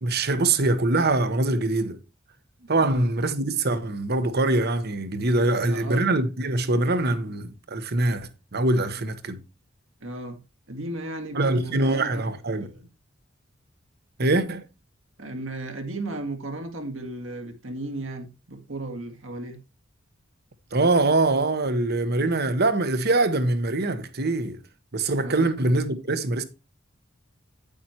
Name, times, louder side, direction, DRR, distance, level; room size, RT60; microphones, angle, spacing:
voice 1, 0.0-2.0 2.7-9.4 11.3-12.7 14.2-14.6 20.7-24.6 24.9-26.4, right 2 dB, 55° right, 1.1 m, -23 dB
voice 2, 2.7-3.1 5.5-6.1 10.0-10.4 10.7-12.2 12.5-12.9 15.2-19.6 25.2-25.5, right 2 dB, 75° right, 2.1 m, -35 dB
9.3 x 8.6 x 2.9 m
head